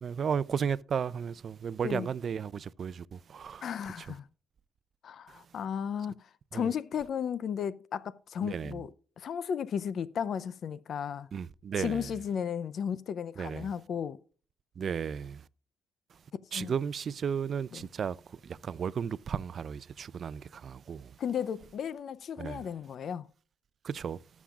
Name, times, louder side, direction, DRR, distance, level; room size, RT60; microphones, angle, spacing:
voice 1, 0.0-3.7 6.5-6.7 8.4-8.8 11.3-12.0 13.4-13.7 14.8-15.4 16.5-21.1 22.4-22.6 23.8-24.2, right 7 dB, 50° right, 0.4 m, -34 dB
voice 2, 3.6-4.3 5.0-6.3 6.5-8.9 9.2-11.3 11.8-14.2 16.5-16.7 17.7-17.9 21.2-23.3, left 8 dB, 60° left, 0.5 m, -34 dB
18.5 x 7.3 x 2.4 m
cardioid pair, 90°, 0 cm